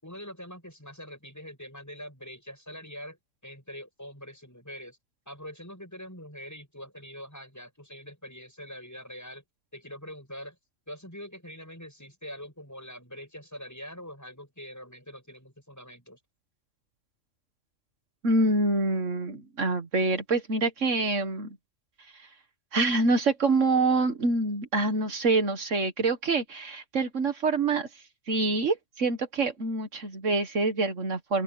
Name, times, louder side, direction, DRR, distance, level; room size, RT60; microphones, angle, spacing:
voice 1, 0.0-3.2 3.4-5.0 5.3-9.4 9.7-10.6 10.9-16.2, equal, 15° left, 7.0 m, -44 dB
voice 2, 18.2-21.5 22.7-27.9 28.3-31.4, right 3 dB, 75° right, 2.0 m, -26 dB
open air
omnidirectional pair, 1.3 m